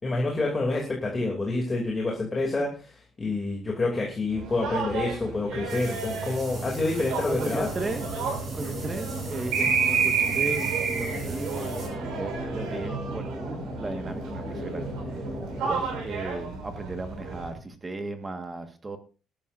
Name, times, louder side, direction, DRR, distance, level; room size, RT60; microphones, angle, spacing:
voice 1, 0.0-7.7, left 2 dB, 20° left, -1 dB, 2.7 m, -28 dB
sound 1, 4.3-17.5, right 5 dB, 85° right, 5.5 m, -31 dB
sound 2, 5.7-11.9, right 5 dB, 35° right, 7.2 m, -39 dB
sound 3, 7.3-16.0, equal, ahead, 4.9 m, -37 dB
voice 2, 7.3-8.2 8.5-14.9 15.6-19.0, right 2 dB, 15° right, 7 dB, 1.5 m, -36 dB
20.5 x 12.5 x 2.6 m, 0.35 s
cardioid pair, 170°, 0 cm